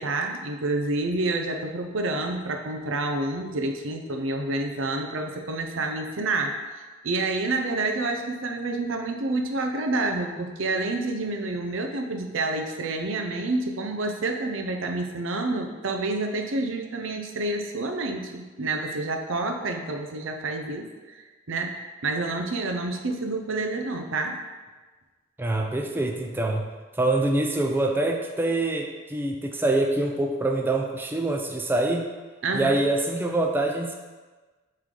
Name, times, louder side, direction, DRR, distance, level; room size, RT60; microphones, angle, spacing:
voice 1, 0.0-6.6 7.0-24.4 32.4-32.8, right 2 dB, 80° right, 4 dB, 0.6 m, -28 dB
voice 2, 25.4-26.7 26.9-32.1 32.5-33.9, right 2 dB, 10° right, 2 dB, 0.3 m, -25 dB
7.6 x 3.3 x 3.8 m, 1.3 s
head